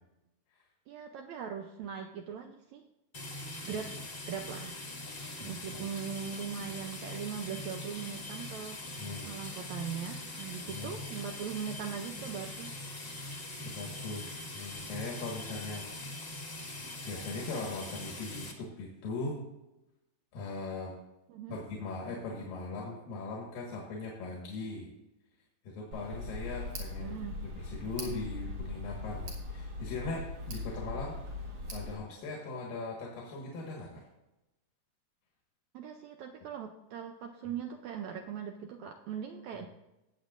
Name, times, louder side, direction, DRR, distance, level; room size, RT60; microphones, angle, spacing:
voice 1, 0.9-2.8 3.6-3.9 4.3-4.8 5.4-12.8 21.3-21.6 27.0-27.4 35.7-39.7, right 7 dB, 80° right, 4 dB, 1.6 m, -40 dB
sound 1, 3.1-18.5, left 2 dB, 35° left, 1.0 m, -42 dB
voice 2, 5.4-5.8 9.0-9.3 10.7-11.0 13.6-15.9 17.0-19.4 20.3-21.0 21.5-24.9 25.6-27.2 27.4-31.2 31.7-34.0, left 3 dB, 85° left, -2 dB, 3.3 m, -40 dB
Tick, 25.9-31.9, left 2 dB, 55° right, 3.0 m, -40 dB
18.5 x 7.5 x 2.5 m, 0.97 s
omnidirectional pair, 3.9 m